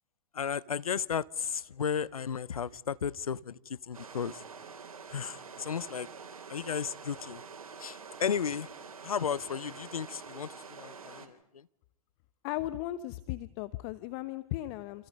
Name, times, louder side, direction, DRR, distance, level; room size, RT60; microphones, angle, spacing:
voice 1, 0.3-4.4 5.1-6.1 6.5-7.4 7.8-8.7 9.0-11.7, left 7 dB, 85° left, 0.9 m, -34 dB
sound 1, 3.9-11.3, right 5 dB, 85° right, 3.6 m, -47 dB
voice 2, 12.4-15.1, left 15 dB, 45° left, 1.1 m, -36 dB
28.5 x 27.5 x 5.4 m
hypercardioid pair, 110°, 18 cm